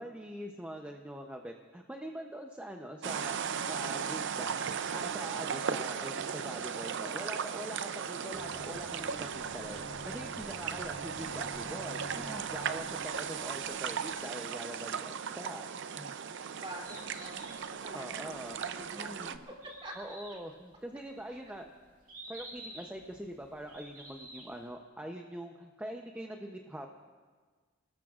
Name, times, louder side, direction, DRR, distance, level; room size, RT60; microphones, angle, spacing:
voice 1, 0.0-3.3 3.7-15.7 15.9-16.1 17.9-19.3 20.0-21.7 22.3-26.9, right 1 dB, 5° right, 3 dB, 0.7 m, -43 dB
sound 1, 3.0-19.4, right 7 dB, 60° right, 0.6 m, -37 dB
Aircraft, 8.3-14.4, left 1 dB, 70° left, 1.3 m, -50 dB
voice 2, 16.5-17.5 17.8-20.0 21.3-21.4, right 1 dB, 25° right, 0 dB, 3.0 m, -46 dB
Bird, 16.7-24.7, right 1 dB, 40° right, 4.2 m, -51 dB
29.5 x 19.5 x 2.5 m, 1.5 s
head